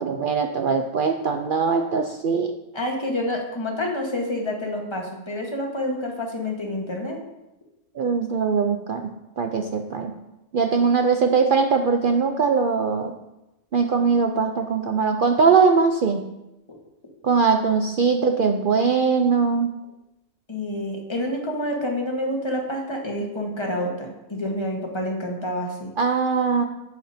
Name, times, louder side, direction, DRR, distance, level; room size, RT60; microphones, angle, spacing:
voice 1, 0.0-2.5 8.0-10.1 10.5-13.1 13.7-16.2 17.2-19.7 26.0-26.6, right 5 dB, 65° right, 4 dB, 0.5 m, -21 dB
voice 2, 2.7-7.2 16.7-16.8 17.5-17.6 20.5-25.9, left 1 dB, 20° left, 0 dB, 1.2 m, -28 dB
8.7 x 7.2 x 2.7 m, 0.95 s
omnidirectional pair, 1.4 m